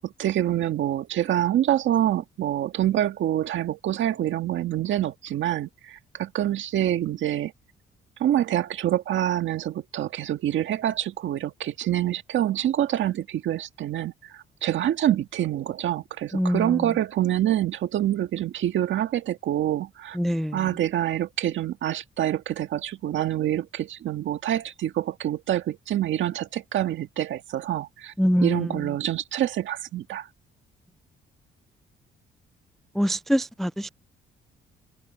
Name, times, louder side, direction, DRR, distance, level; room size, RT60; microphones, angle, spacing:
voice 1, 0.0-7.5 8.2-20.2 20.5-28.1 28.4-30.3, right 12 dB, 75° right, 1.8 m, -26 dB
voice 2, 16.3-16.8 20.2-20.6 28.2-28.7 33.0-33.9, equal, ahead, 0.3 m, -24 dB
cardioid pair, 90°, 20 cm